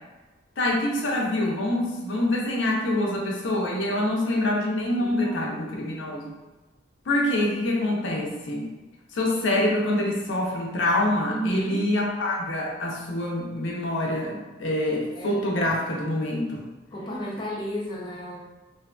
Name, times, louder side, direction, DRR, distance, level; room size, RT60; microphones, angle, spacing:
voice 1, 0.6-6.3 7.1-8.7 9.1-16.7, left 1 dB, 70° left, -1 dB, 0.6 m, -26 dB
voice 2, 4.9-5.6 11.3-11.8 15.2-15.6 16.9-18.4, equal, 25° left, -3 dB, 0.4 m, -33 dB
2.6 x 2.4 x 2.2 m, 1.2 s
head